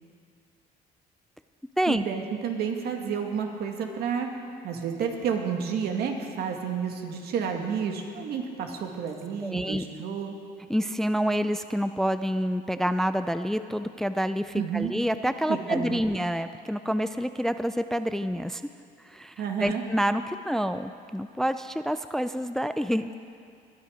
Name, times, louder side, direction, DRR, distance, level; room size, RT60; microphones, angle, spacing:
voice 1, 1.9-10.4 14.5-14.9 15.5-16.0 19.4-19.8, right 7 dB, 70° right, 3 dB, 1.9 m, -30 dB
voice 2, 9.4-9.8 10.7-18.6 19.0-23.1, equal, ahead, 11 dB, 0.4 m, -28 dB
21.0 x 11.5 x 5.1 m, 2.3 s
cardioid pair, 110°, 17 cm